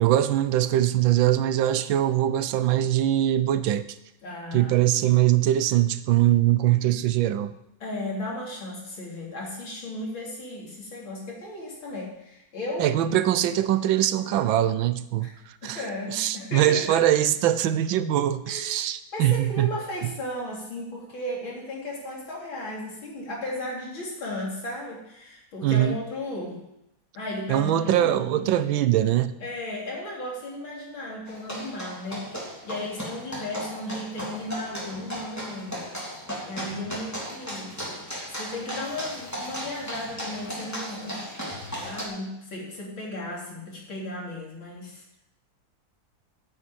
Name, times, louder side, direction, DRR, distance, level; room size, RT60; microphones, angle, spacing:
voice 1, 0.0-4.0 4.5-7.5 12.8-15.8 16.1-19.7 25.6-26.0 27.5-29.3, right 12 dB, 85° right, 1.5 m, -22 dB
voice 2, 4.2-4.7 7.8-13.0 15.2-15.3 15.6-17.1 18.5-18.7 19.1-26.6 27.1-28.7 29.4-38.0 38.4-45.2, left 1 dB, 90° left, 4.3 m, -35 dB
sound 1, 31.3-42.0, equal, 10° left, 3.2 m, -36 dB
9.5 x 8.2 x 8.8 m
omnidirectional pair, 2.1 m